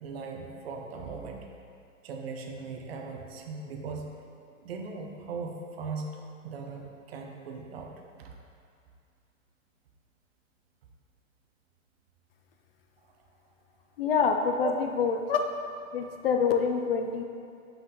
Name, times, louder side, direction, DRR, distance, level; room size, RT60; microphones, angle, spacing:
voice 1, 0.0-1.5 2.0-4.1 4.6-7.9 8.2-8.4 13.0-13.1 14.6-14.8, right 4 dB, 50° right, 2 dB, 0.8 m, -38 dB
voice 2, 14.0-15.5 15.9-17.2, left 6 dB, 45° left, 5 dB, 0.4 m, -26 dB
5.9 x 5.5 x 3.8 m, 2.4 s
hypercardioid pair, 150°, 40 cm